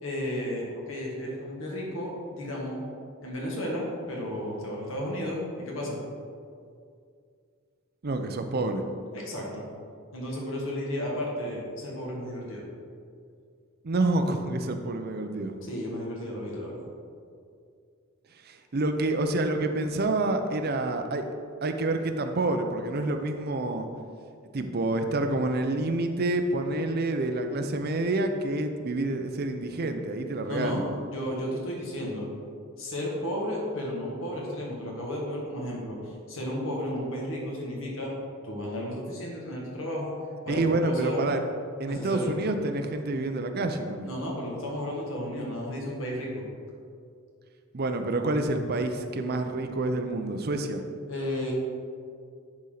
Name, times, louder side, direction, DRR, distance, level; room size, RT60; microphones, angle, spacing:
voice 1, 0.0-2.8 3.2-6.0 9.1-9.7 10.1-12.7 15.6-16.9 30.5-30.8 31.1-32.3 32.8-38.1 38.4-40.1 40.5-41.2 41.9-42.3 44.0-46.4 51.1-51.5, left 1 dB, 70° left, -3 dB, 1.8 m, -33 dB
voice 2, 8.0-8.9 13.8-15.5 18.4-21.2 21.6-23.9 24.5-30.8 40.5-41.4 41.8-44.1 47.7-50.8, right 2 dB, 50° right, 6 dB, 0.6 m, -28 dB
10.5 x 4.3 x 3.9 m, 2.3 s
head